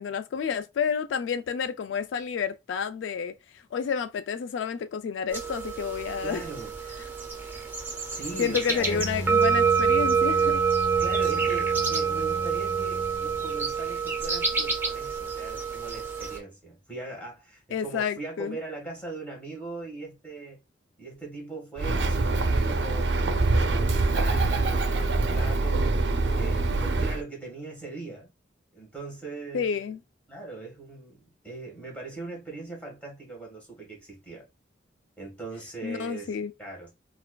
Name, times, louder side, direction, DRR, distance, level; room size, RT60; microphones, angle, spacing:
voice 1, 0.0-3.3 3.7-6.4 8.4-10.6 17.7-18.6 29.5-30.0 35.8-36.5, left 7 dB, 80° left, 0.3 m, -30 dB
sound 1, 5.3-16.4, right 6 dB, 10° right, 0.7 m, -27 dB
voice 2, 6.2-6.7 8.0-9.1 11.0-20.6 21.0-28.3 28.7-29.9 30.3-34.4 35.2-36.9, right 3 dB, 5° left, 1.4 m, -40 dB
Bowed string instrument, 8.8-13.7, equal, 55° left, 0.8 m, -36 dB
Bird, 21.8-27.2, right 2 dB, 65° right, 0.4 m, -24 dB
4.2 x 2.4 x 2.2 m
head